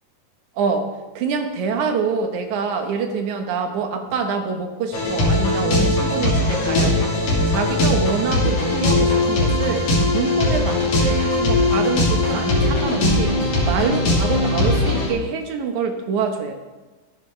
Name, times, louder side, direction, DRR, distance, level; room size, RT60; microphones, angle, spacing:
voice 1, 0.6-7.1 7.5-9.9 10.1-16.5, right 5 dB, 65° right, 5 dB, 2.3 m, -25 dB
sound 1, 4.9-15.1, left 2 dB, 55° left, 3.9 m, -19 dB
15.5 x 11.5 x 3.3 m, 1.2 s
omnidirectional pair, 4.0 m